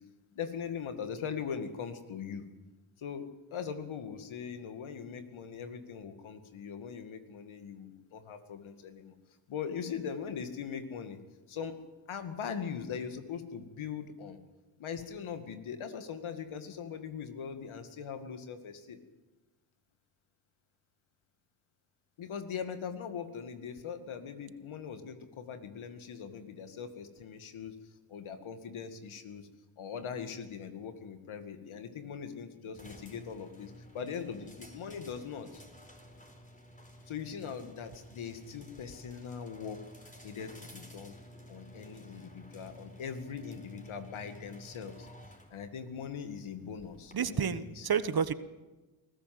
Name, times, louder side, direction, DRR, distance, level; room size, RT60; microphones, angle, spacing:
voice 1, 0.3-2.5 3.0-9.1 9.5-11.2 11.5-11.7 12.1-14.4 14.8-19.0 22.2-27.7 28.1-29.5 29.8-35.6 37.1-41.2 41.5-45.1 45.5-48.1, left 7 dB, 70° left, 8 dB, 2.2 m, -41 dB
sound 1, 32.7-47.1, equal, 15° left, 4.8 m, -53 dB
voice 2, 47.1-48.3, right 7 dB, 45° right, 14 dB, 1.3 m, -30 dB
24.0 x 15.0 x 7.8 m, 1.2 s
supercardioid pair, 45°, 49 cm